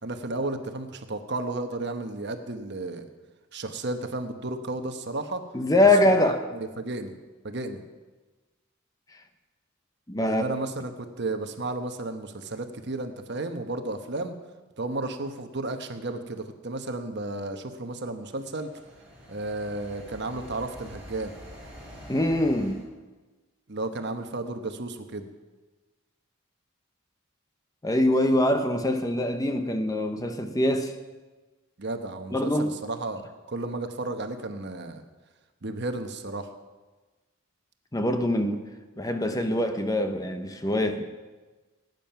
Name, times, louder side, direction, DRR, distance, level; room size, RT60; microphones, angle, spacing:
voice 1, 0.0-3.1 3.5-5.4 6.1-6.3 6.8-7.2 7.4-7.8 10.3-14.4 14.8-18.7 19.3-21.3 23.7-25.3 31.8-35.0 35.6-36.5, right 2 dB, 55° right, 7 dB, 1.1 m, -33 dB
voice 2, 5.5-6.4 9.1-9.2 10.1-10.6 22.1-22.8 27.8-30.9 32.3-32.7 37.9-38.6 39.0-41.0, left 1 dB, 15° left, 7 dB, 0.9 m, -24 dB
sound 1, 18.2-22.8, equal, 5° right, 4.8 m, -46 dB
18.5 x 9.3 x 5.8 m, 1.3 s
head